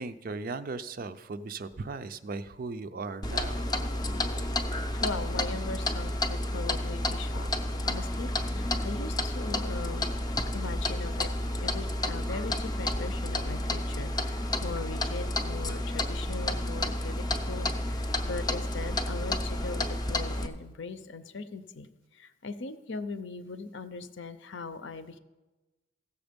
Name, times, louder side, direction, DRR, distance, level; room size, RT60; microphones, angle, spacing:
voice 1, 0.0-3.7, right 3 dB, 45° right, 12 dB, 0.4 m, -37 dB
Clock, 3.2-20.5, left 1 dB, 20° left, 0.6 m, -31 dB
voice 2, 4.9-10.1 10.5-11.3 11.6-21.9 22.1-25.2, left 4 dB, 60° left, 12 dB, 0.6 m, -40 dB
15.5 x 7.0 x 5.2 m, 1.1 s
head